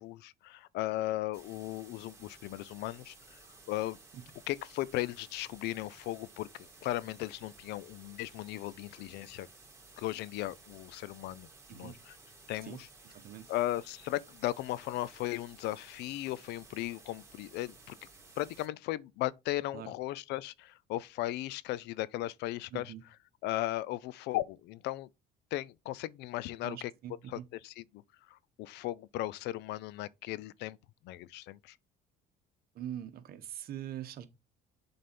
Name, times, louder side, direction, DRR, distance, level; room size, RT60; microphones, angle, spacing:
voice 1, 0.0-3.4 3.7-4.0 4.5-9.5 10.0-12.1 12.5-12.8 13.5-18.0 18.4-22.9 23.4-25.1 25.5-26.9 27.3-27.8 28.3-30.8 31.0-31.8, left 16 dB, 85° left, 0.5 m, -36 dB
sound 1, 1.3-18.7, right 3 dB, 15° right, 3.0 m, -56 dB
voice 2, 13.1-13.5 19.7-19.9 22.7-23.0 26.6-27.4 32.7-34.3, right 11 dB, 65° right, 1.2 m, -43 dB
7.7 x 4.2 x 5.2 m
cardioid pair, 110°, 17 cm